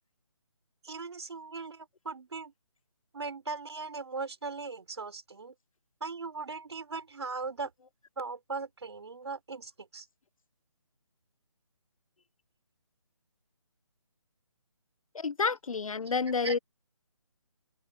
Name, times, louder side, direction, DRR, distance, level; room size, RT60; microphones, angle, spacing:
voice 1, 0.8-2.5 3.1-5.5 6.0-7.7 8.2-10.1 16.4-16.6, right 4 dB, 55° right, 4.2 m, -39 dB
voice 2, 15.1-16.6, left 5 dB, 85° left, 0.8 m, -29 dB
hypercardioid pair, 180°, 17 cm